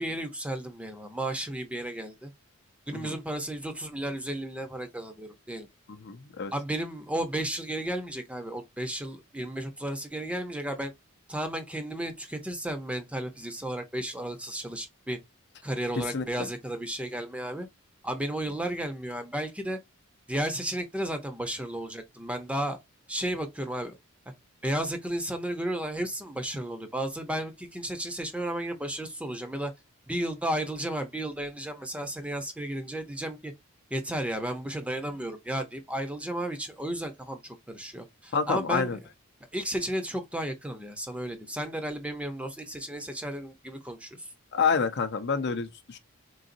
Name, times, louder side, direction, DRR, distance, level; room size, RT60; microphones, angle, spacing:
voice 1, 0.0-2.3 2.9-5.7 6.5-10.9 11.3-15.2 15.6-17.7 18.0-19.8 20.3-22.8 23.1-24.0 24.6-29.7 30.1-33.5 33.9-39.0 39.5-44.1, right 1 dB, 5° right, 0.6 m, -33 dB
voice 2, 6.0-6.5 16.1-16.5 38.3-39.0 44.5-46.0, left 5 dB, 50° left, 0.6 m, -28 dB
3.9 x 3.7 x 2.5 m
head